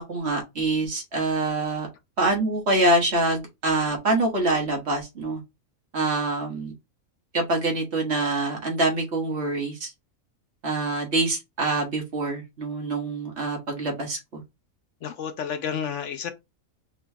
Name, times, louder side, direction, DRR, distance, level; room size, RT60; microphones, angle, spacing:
voice 1, 0.0-1.9 2.2-5.4 5.9-6.7 7.3-9.9 10.6-14.4, right 2 dB, 50° right, 1.6 m, -25 dB
voice 2, 15.0-16.3, left 7 dB, 65° left, 0.9 m, -30 dB
4.5 x 3.0 x 3.4 m
omnidirectional pair, 1.4 m